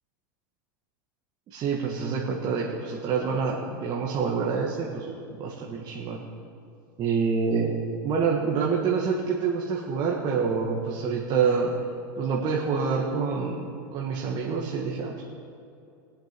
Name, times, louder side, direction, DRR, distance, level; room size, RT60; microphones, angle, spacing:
voice 1, 1.5-5.1 5.4-6.2 7.0-7.8 8.0-11.7 12.2-15.2, right 5 dB, 40° right, -2 dB, 1.9 m, -27 dB
23.5 x 7.8 x 5.3 m, 2.6 s
supercardioid pair, 115°, 11 cm